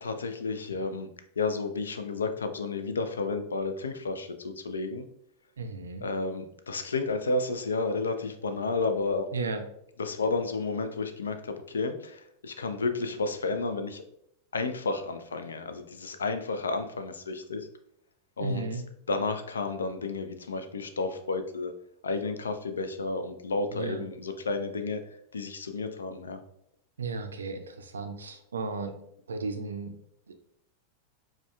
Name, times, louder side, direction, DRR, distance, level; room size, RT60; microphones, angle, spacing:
voice 1, 0.0-1.1 1.4-5.0 6.0-9.3 10.0-14.0 14.5-17.7 18.4-18.6 19.1-21.7 22.0-25.0 25.3-26.4, left 3 dB, 70° left, 8 dB, 0.3 m, -31 dB
voice 2, 5.6-6.1 9.3-9.6 18.4-18.8 23.7-24.0 27.0-28.9 29.3-30.0 30.3-30.4, right 3 dB, 70° right, 7 dB, 0.4 m, -34 dB
4.7 x 2.1 x 2.3 m, 0.73 s
figure-of-eight pair, 90°, 0 cm